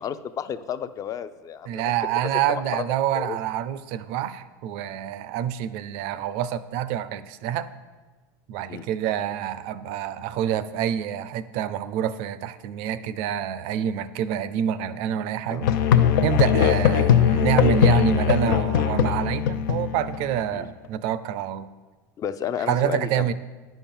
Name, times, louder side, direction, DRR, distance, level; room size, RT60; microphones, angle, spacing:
voice 1, 0.0-1.9 2.5-2.9 3.1-3.4 8.7-8.9 15.5-15.6 20.5-20.7 22.2-23.3, left 9 dB, 35° left, 12 dB, 0.5 m, -32 dB
voice 2, 1.7-7.7 8.5-15.7 16.2-21.7 22.7-23.3, right 10 dB, 65° right, 15 dB, 0.6 m, -27 dB
Musical instrument, 15.6-20.4, left 9 dB, 85° left, 0.6 m, -20 dB
10.0 x 5.8 x 7.1 m, 1.3 s
supercardioid pair, 115°, 11 cm